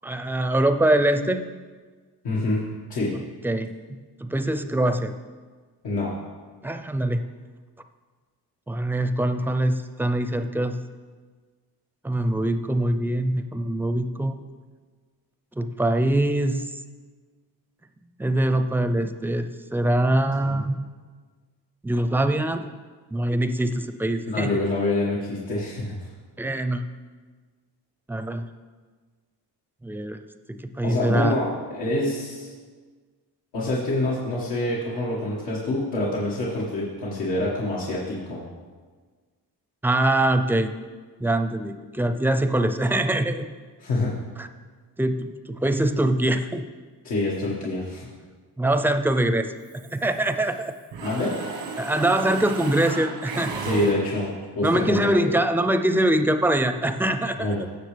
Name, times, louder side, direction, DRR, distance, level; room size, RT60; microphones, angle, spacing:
voice 1, 0.0-1.4 3.4-3.8 4.2-5.1 6.6-7.2 8.7-10.8 12.0-14.4 15.6-16.7 18.2-20.8 21.8-22.6 23.1-24.5 26.4-26.8 28.1-28.5 29.8-30.2 30.8-31.3 39.8-40.7 41.2-43.4 44.4-44.5 45.0-46.6 48.6-49.5 49.9-50.7 51.8-53.5 54.6-57.5, right 1 dB, 5° right, 8 dB, 0.5 m, -23 dB
voice 2, 2.2-3.2 5.8-6.1 20.4-20.6 24.3-25.9 30.8-32.5 33.5-38.4 43.8-44.1 47.0-48.1 51.0-51.3 53.6-55.1 57.4-57.6, left 2 dB, 85° left, -7 dB, 1.9 m, -26 dB
Mechanisms, 49.7-50.6 50.9-54.5, right 4 dB, 90° right, 1.3 m, -35 dB
16.0 x 6.3 x 3.4 m, 1.5 s
cardioid pair, 85°, 42 cm